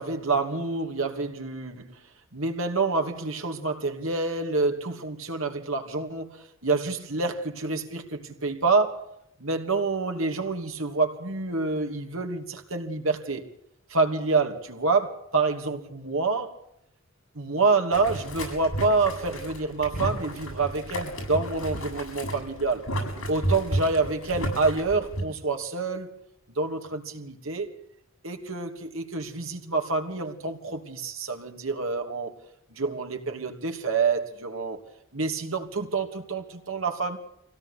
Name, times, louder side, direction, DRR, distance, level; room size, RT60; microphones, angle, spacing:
voice 1, 0.0-2.0 2.3-9.1 9.4-13.4 13.9-16.5 17.3-22.9 23.3-26.2 26.5-27.7 28.2-32.3 32.7-34.8 35.1-37.2, right 3 dB, 75° right, 2.9 m, -27 dB
Boiling, 17.9-25.2, right 1 dB, 80° left, 7.8 m, -32 dB
24.5 x 17.0 x 8.3 m
head